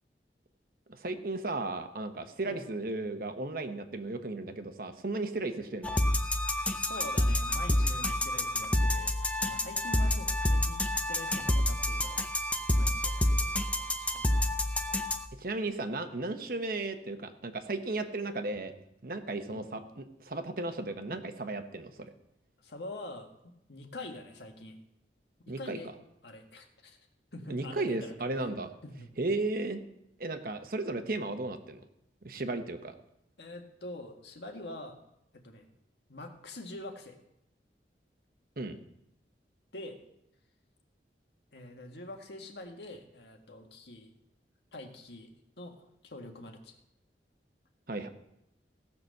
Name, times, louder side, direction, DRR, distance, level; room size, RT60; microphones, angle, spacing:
voice 1, 0.9-6.0 15.4-18.7 19.0-22.1 25.5-25.8 27.5-28.7 29.2-29.8 30.2-31.8 32.2-32.9 38.6-38.8 47.9-48.1, right 2 dB, 55° right, 8 dB, 1.0 m, -35 dB
sound 1, 5.8-15.3, left 1 dB, 5° left, 0.5 m, -28 dB
voice 2, 6.6-12.3 12.7-13.5 13.8-14.4 19.5-19.7 22.6-24.8 25.5-25.9 26.2-27.0 27.3-28.1 28.8-29.1 33.4-35.0 35.3-35.7 36.1-37.2 39.7-40.0 41.5-44.1 44.7-45.3 45.6-46.7, left 1 dB, 75° left, 3 dB, 1.7 m, -45 dB
16.5 x 6.0 x 6.6 m, 0.82 s
head